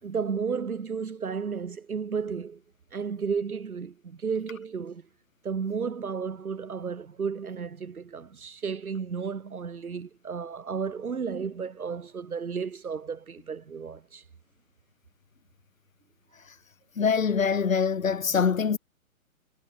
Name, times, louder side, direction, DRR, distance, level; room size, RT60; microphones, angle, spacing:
voice 1, 0.0-2.6 2.9-5.0 5.4-14.2, right 6 dB, 85° right, 4.5 m, -33 dB
voice 2, 17.0-18.8, left 6 dB, 65° left, 4.5 m, -24 dB
hypercardioid pair, 180°, 42 cm